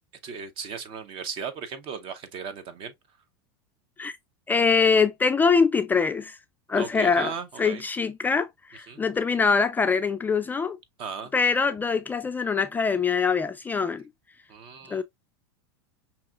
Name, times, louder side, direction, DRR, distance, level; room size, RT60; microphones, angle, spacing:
voice 1, 0.2-2.9 6.8-7.8 8.9-9.0 11.0-11.3 14.5-15.0, right 6 dB, 45° right, 0.9 m, -36 dB
voice 2, 4.5-6.4 6.7-7.3 7.6-10.8 11.3-14.1 14.9-15.0, left 5 dB, 15° left, 0.3 m, -23 dB
5.6 x 2.9 x 2.4 m
supercardioid pair, 120°, 13 cm